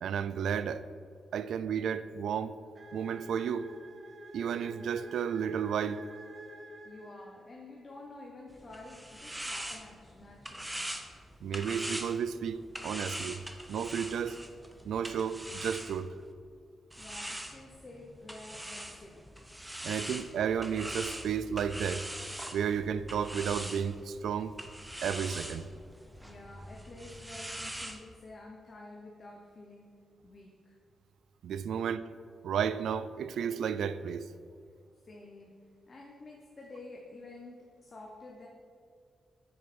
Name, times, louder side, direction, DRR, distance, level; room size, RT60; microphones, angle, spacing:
voice 1, 0.0-0.8 1.3-2.6 2.9-3.7 4.3-6.0 11.4-13.4 13.7-14.4 14.8-16.1 19.8-22.1 22.5-24.6 25.0-25.7 31.4-32.1 32.4-34.3, right 7 dB, 90° right, 0.3 m, -32 dB
sound 1, 2.7-7.6, right 1 dB, 45° right, 0.7 m, -49 dB
voice 2, 6.8-10.9 17.0-19.2 26.2-30.0 30.2-30.8 35.0-35.6 35.9-38.5, left 2 dB, 30° left, 0.8 m, -49 dB
sound 2, 8.5-16.3 16.9-28.0, right 1 dB, 5° right, 0.6 m, -42 dB
8.8 x 6.7 x 4.3 m
wide cardioid pair, 160°, 0 cm